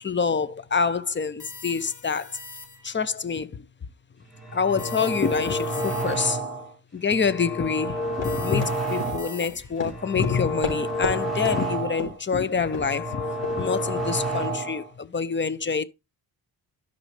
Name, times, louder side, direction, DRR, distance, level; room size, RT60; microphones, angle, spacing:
voice 1, 0.0-2.3 2.8-3.5 4.5-6.4 6.9-13.2 13.6-15.8, left 5 dB, 25° left, 0.6 m, -26 dB
sound 1, 1.4-3.1 4.8-6.5 8.2-9.9, left 3 dB, 40° left, 1.8 m, -44 dB
sound 2, 4.3-6.7 7.1-9.4 9.8-12.2 12.5-14.9, right 1 dB, ahead, 4.9 m, -30 dB
Run, 8.2-11.2 11.4-11.6 12.0-12.3 12.7-12.9 13.4-13.5, left 4 dB, 80° left, 4.1 m, -32 dB
12.0 x 5.4 x 3.2 m
wide cardioid pair, 110°, 44 cm